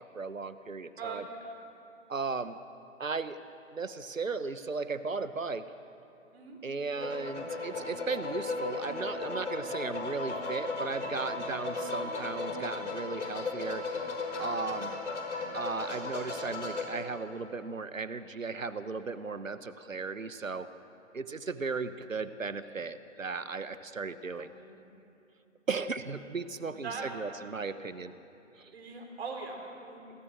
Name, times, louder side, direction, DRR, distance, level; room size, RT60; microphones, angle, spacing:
voice 1, 0.0-1.2 2.1-2.6 3.0-3.4 3.7-5.7 6.6-13.8 14.4-15.0 15.5-20.7 21.1-24.5 25.7-28.1 28.6-28.7, right 4 dB, 80° right, 13 dB, 1.2 m, -36 dB
voice 2, 1.0-1.5 6.3-6.6 24.4-24.8 26.7-27.1 28.7-30.0, right 4 dB, 55° right, 2 dB, 5.4 m, -41 dB
sound 1, 7.0-16.8, left 3 dB, 65° left, 5.4 m, -36 dB
29.5 x 21.0 x 6.4 m, 2.8 s
figure-of-eight pair, 130°, 39 cm